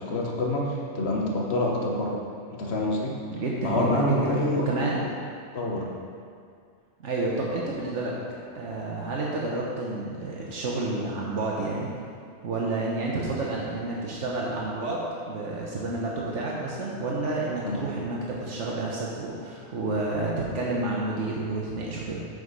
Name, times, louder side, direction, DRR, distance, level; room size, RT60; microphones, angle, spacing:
voice 1, 0.0-2.2 2.6-3.2 3.6-4.7 5.5-5.9 17.6-17.9, left 1 dB, 60° left, -2 dB, 1.4 m, -27 dB
voice 2, 3.3-4.3 4.6-5.0 7.0-8.1 8.5-11.9 12.4-15.0 15.3-22.3, right 2 dB, 80° right, -4 dB, 1.3 m, -30 dB
8.5 x 5.1 x 5.0 m, 2.2 s
omnidirectional pair, 1.2 m